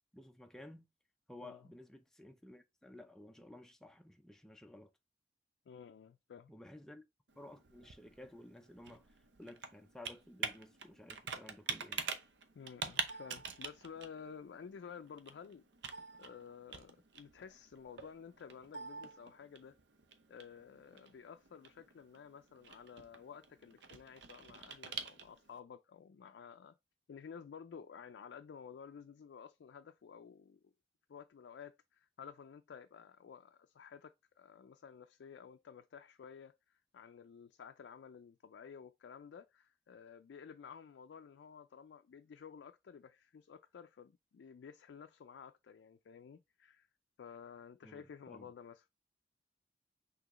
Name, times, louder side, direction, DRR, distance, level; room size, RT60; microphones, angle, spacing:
voice 1, 0.1-0.9 1.3-4.9 6.5-7.0 7.4-9.0 9.4-12.0 47.8-48.5, left 1 dB, 5° left, 0.4 m, -54 dB
voice 2, 5.7-6.5 12.5-15.6 16.2-19.7 20.3-26.7 27.1-30.7 31.1-46.9 47.2-48.9, left 6 dB, 85° left, 0.3 m, -53 dB
Computer keyboard, 7.3-25.6, right 6 dB, 90° right, 0.7 m, -46 dB
6.0 x 2.9 x 2.9 m
head